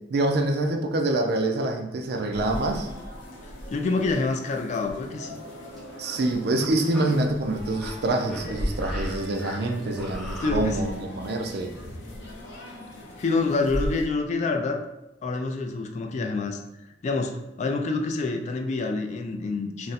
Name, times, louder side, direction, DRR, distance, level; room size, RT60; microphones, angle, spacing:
voice 1, 0.1-2.9 6.0-10.9 11.2-11.7, right 2 dB, 60° right, 4 dB, 0.4 m, -26 dB
sound 1, 2.3-14.1, equal, 90° left, 0.6 m, -37 dB
voice 2, 3.7-5.4 10.4-11.0 13.2-14.8 15.2-16.6 17.0-19.9, left 3 dB, 40° left, 4 dB, 0.3 m, -27 dB
sound 2, 5.7-6.2 6.6-7.1 7.6-10.5, left 1 dB, ahead, 0.8 m, -40 dB
2.5 x 2.1 x 4.0 m, 0.97 s
head